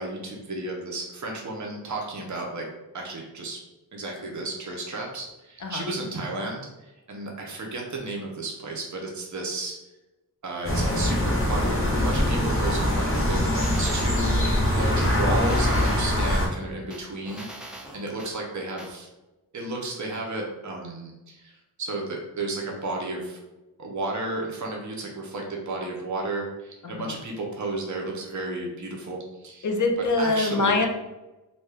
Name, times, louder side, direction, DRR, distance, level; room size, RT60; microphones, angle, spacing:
voice 1, 0.0-2.7 2.9-3.6 3.9-9.8 10.4-17.5 17.9-19.1 19.5-23.4 23.8-29.7 30.2-30.8, right 2 dB, 45° right, -1 dB, 0.7 m, -33 dB
sound 1, 10.6-16.5, left 1 dB, 30° left, 0.9 m, -23 dB
sound 2, 13.2-14.6 15.0-16.4 16.9-18.3 18.8-18.9, right 1 dB, ahead, 0.5 m, -42 dB
voice 2, 26.8-27.2 29.6-30.9, left 3 dB, 50° left, 3 dB, 0.5 m, -24 dB
2.7 x 2.2 x 3.3 m, 1.0 s
wide cardioid pair, 60°, 40 cm